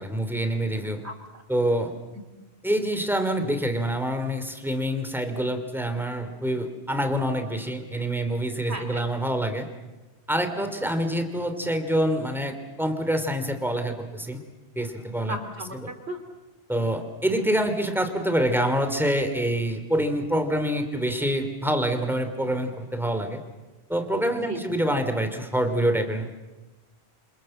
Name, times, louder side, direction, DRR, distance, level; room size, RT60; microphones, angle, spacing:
voice 1, 0.0-1.0 1.5-1.9 2.6-9.7 10.3-14.4 14.8-15.4 15.7-15.9 16.7-23.4 23.9-26.3, right 1 dB, ahead, 7 dB, 2.8 m, -26 dB
voice 2, 1.0-1.4 8.7-9.0 10.5-10.7 15.2-16.2 24.3-24.6, right 1 dB, 75° right, 8 dB, 3.4 m, -36 dB
28.5 x 26.5 x 7.8 m, 1.1 s
omnidirectional pair, 1.1 m